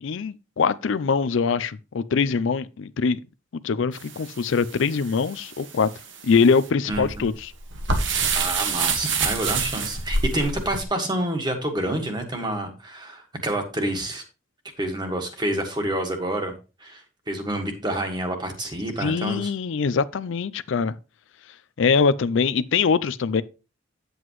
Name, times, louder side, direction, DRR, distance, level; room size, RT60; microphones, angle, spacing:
voice 1, 0.0-3.2 3.6-5.9 6.2-7.5 19.0-20.9 21.8-23.4, left 5 dB, 70° left, 0.4 m, -23 dB
sound 1, 3.9-10.8, right 4 dB, 65° right, 1.5 m, -28 dB
voice 2, 6.9-7.3 8.3-14.2 14.8-16.5 16.8-19.5, right 1 dB, 20° right, 1.6 m, -28 dB
9.4 x 7.9 x 3.1 m
head